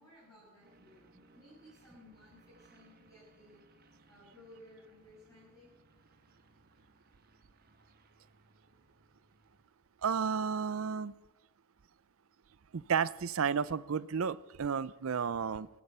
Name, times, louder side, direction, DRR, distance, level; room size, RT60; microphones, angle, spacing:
voice 1, 0.0-3.6 4.1-5.8, left 1 dB, 15° left, -8 dB, 6.7 m, -58 dB
sound 1, 0.6-9.6, right 2 dB, 45° right, 1.5 m, -65 dB
voice 2, 10.0-11.1 12.7-15.7, right 6 dB, 70° right, 19 dB, 0.5 m, -32 dB
18.0 x 14.0 x 5.5 m, 1.1 s
head